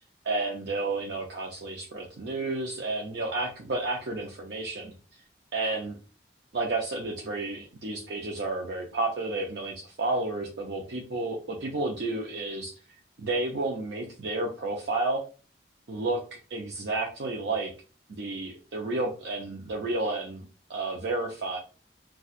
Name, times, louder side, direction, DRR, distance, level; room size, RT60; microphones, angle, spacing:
voice 1, 0.2-4.9 5.5-6.0 6.5-12.8 13.2-15.2 15.9-17.7 18.1-20.4 20.7-21.6, right 2 dB, 80° right, -1 dB, 0.6 m, -31 dB
4.1 x 2.3 x 2.4 m, 0.36 s
head